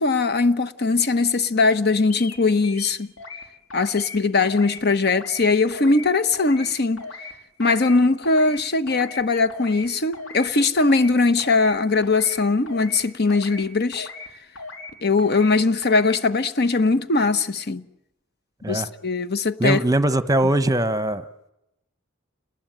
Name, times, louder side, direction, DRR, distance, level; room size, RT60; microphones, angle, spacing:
voice 1, 0.0-3.1 3.7-7.0 7.6-14.1 15.0-17.8 18.7-19.8, left 3 dB, 55° left, 1.1 m, -20 dB
sound 1, 2.1-2.4 2.6-3.4 3.7-4.2 4.4-4.8 5.1-5.4 5.7-6.1 6.3-6.7 7.0-7.3 7.6-8.0 8.2-8.6 8.9-9.2 9.5-9.9 10.1-10.5 10.8-11.1 11.4-11.8 12.0-12.4 12.7-13.0 13.3-13.7 13.9-14.3 14.6-14.9 15.2-15.5 15.8-16.2, left 3 dB, 90° left, 4.1 m, -37 dB
voice 2, 19.6-21.2, right 1 dB, 20° right, 1.0 m, -21 dB
29.5 x 20.0 x 9.2 m
head